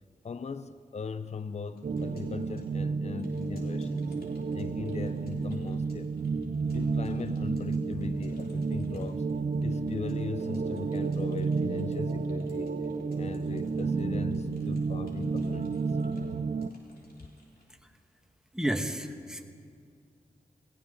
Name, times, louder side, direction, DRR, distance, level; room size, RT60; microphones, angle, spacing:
voice 1, 0.2-4.1 4.5-6.2 6.7-9.3 9.6-12.7 13.1-16.0, left 5 dB, 40° left, 13 dB, 0.6 m, -39 dB
Keyboard (musical) / Computer keyboard, 1.7-17.8, left 1 dB, 65° left, 3.6 m, -59 dB
sound 1, 1.8-16.7, right 4 dB, 50° right, 0.7 m, -31 dB
voice 2, 18.5-19.5, right 1 dB, 5° right, 5 dB, 1.5 m, -31 dB
19.5 x 17.0 x 3.9 m, 2.2 s
cardioid pair, 45°, 17 cm